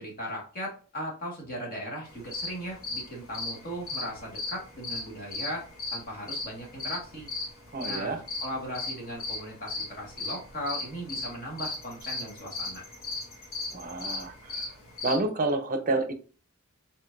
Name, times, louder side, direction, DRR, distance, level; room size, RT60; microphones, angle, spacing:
voice 1, 0.0-5.7 5.9-7.3 7.9-12.8, equal, 40° left, -1 dB, 1.7 m, -38 dB
sound 1, 2.1-15.2, left 3 dB, 75° left, 1.7 m, -36 dB
voice 2, 7.7-8.2 13.7-14.7 15.0-16.1, right 2 dB, 40° right, 7 dB, 0.6 m, -29 dB
4.7 x 3.9 x 2.6 m, 0.38 s
head